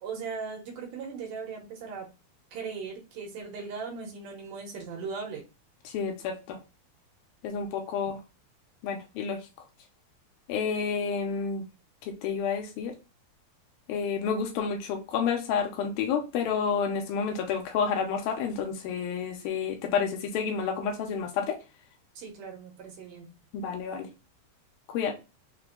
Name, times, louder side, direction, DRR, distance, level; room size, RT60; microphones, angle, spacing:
voice 1, 0.0-2.1 2.5-5.4 22.2-23.3, right 5 dB, 70° right, 2.4 m, -38 dB
voice 2, 5.9-6.6 7.4-8.2 8.8-9.4 10.5-11.6 12.2-12.9 13.9-21.6 23.5-24.1 24.9-25.1, left 6 dB, 80° left, 2.5 m, -29 dB
5.8 x 2.2 x 3.6 m
omnidirectional pair, 4.4 m